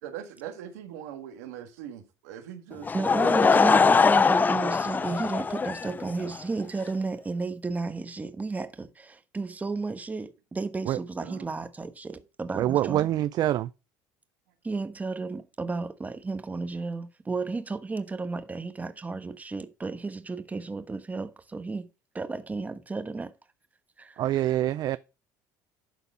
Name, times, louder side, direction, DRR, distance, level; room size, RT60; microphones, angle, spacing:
voice 1, 0.0-2.9 11.2-11.5, right 10 dB, 90° right, 1.7 m, -41 dB
Laughter / Crowd, 2.8-6.4, left 5 dB, 20° left, 0.4 m, -22 dB
voice 2, 2.9-13.1 14.6-21.9 22.1-23.3 24.0-24.3, right 3 dB, 20° right, 1.2 m, -33 dB
voice 3, 12.5-13.7 24.2-25.0, right 13 dB, 55° right, 0.4 m, -25 dB
11.5 x 4.1 x 5.4 m
supercardioid pair, 85°, 8 cm